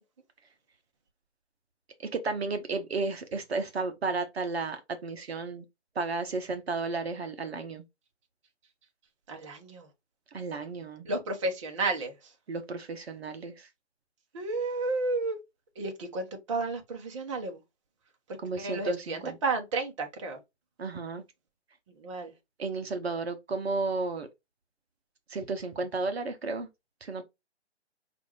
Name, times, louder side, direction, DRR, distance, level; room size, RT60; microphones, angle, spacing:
voice 1, 2.0-5.6 6.0-7.8 10.3-11.1 12.5-13.7 18.4-19.4 20.8-21.2 22.6-24.3 25.3-26.7 27.0-27.2, right 3 dB, 60° right, 0.8 m, -33 dB
voice 2, 9.3-9.9 11.0-12.1 14.3-15.4 15.8-17.6 18.6-20.4 22.0-22.3, right 3 dB, 25° right, 0.9 m, -32 dB
5.1 x 2.5 x 3.0 m
figure-of-eight pair, 145°, 35 cm